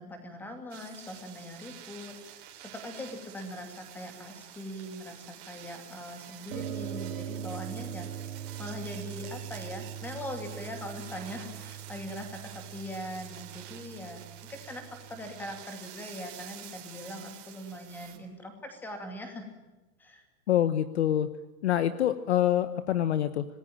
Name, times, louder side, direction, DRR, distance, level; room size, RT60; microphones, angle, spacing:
voice 1, 0.0-14.2 14.5-19.5 20.0-20.2, left 1 dB, 5° left, 5 dB, 2.5 m, -41 dB
sound 1, 0.7-18.2, right 11 dB, 35° right, 3.9 m, -48 dB
sound 2, 6.5-15.6, right 9 dB, 70° right, 2.3 m, -41 dB
voice 2, 20.5-21.3 21.6-23.4, left 11 dB, 45° left, 13 dB, 1.1 m, -26 dB
26.5 x 20.0 x 8.9 m, 1.1 s
hypercardioid pair, 175°, 47 cm